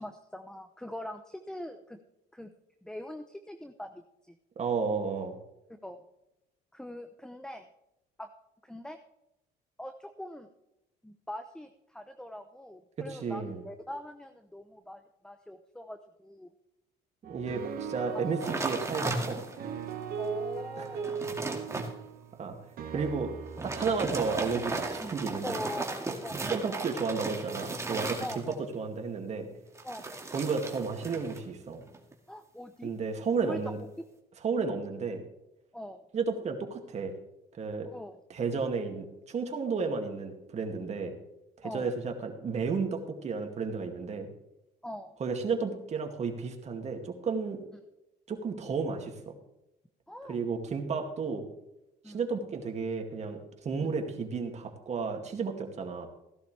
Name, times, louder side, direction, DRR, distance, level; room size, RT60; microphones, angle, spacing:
voice 1, 0.0-2.0 2.3-2.5 2.8-4.3 5.8-6.0 6.7-7.7 8.2-8.3 8.6-9.0 9.8-10.5 11.0-16.5 20.2-21.2 22.9-23.1 23.9-24.0 25.0-25.1 25.4-26.7 28.2-28.6 29.8-30.3 32.3-32.9 33.3-33.7 35.7-36.0 37.8-38.1 41.6-41.9 44.8-45.1 50.1-50.4 52.0-52.2, left 1 dB, 5° left, 8 dB, 0.7 m, -42 dB
voice 2, 4.6-5.4 13.0-13.6 17.2-19.4 20.8-20.9 22.4-22.6 22.9-23.3 23.6-25.6 26.4-29.5 30.3-31.8 32.8-33.8 34.4-35.2 36.1-37.1 37.5-37.9 38.3-41.1 41.6-44.3 45.2-47.6 48.3-49.3 50.3-51.4 52.1-56.1, right 5 dB, 40° right, 3 dB, 2.3 m, -32 dB
sound 1, 17.2-25.8, right 6 dB, 60° right, 1.6 m, -40 dB
sound 2, 18.4-19.7 20.2-20.3 20.8-21.9 23.5-28.7 29.7-31.4 31.7-32.1, right 3 dB, 15° right, 2.1 m, -35 dB
16.5 x 11.5 x 3.3 m, 0.89 s
cardioid pair, 110°, 17 cm